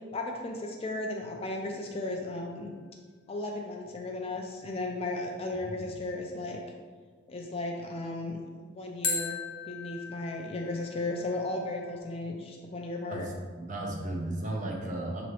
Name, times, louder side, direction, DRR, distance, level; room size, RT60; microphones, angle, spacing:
voice 1, 0.1-2.7 3.3-6.6 7.3-8.4 8.7-13.3, left 2 dB, 30° left, 1 dB, 0.3 m, -35 dB
sound 1, 1.0-2.0 9.0-12.0, left 4 dB, 50° left, 0.9 m, -38 dB
voice 2, 13.1-15.3, right 1 dB, 35° right, 0 dB, 0.6 m, -35 dB
5.7 x 3.0 x 3.0 m, 1.5 s
head